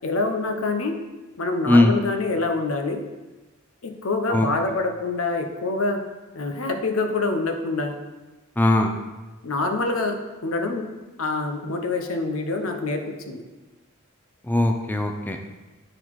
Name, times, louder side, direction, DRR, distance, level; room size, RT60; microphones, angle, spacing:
voice 1, 0.0-0.9 1.4-3.0 3.8-6.0 6.3-8.0 9.4-10.9 11.2-13.4, left 3 dB, 80° left, 5 dB, 0.8 m, -26 dB
voice 2, 8.6-9.0 14.5-15.5, left 1 dB, 10° left, 4 dB, 0.4 m, -19 dB
8.8 x 3.9 x 4.7 m, 1.2 s
head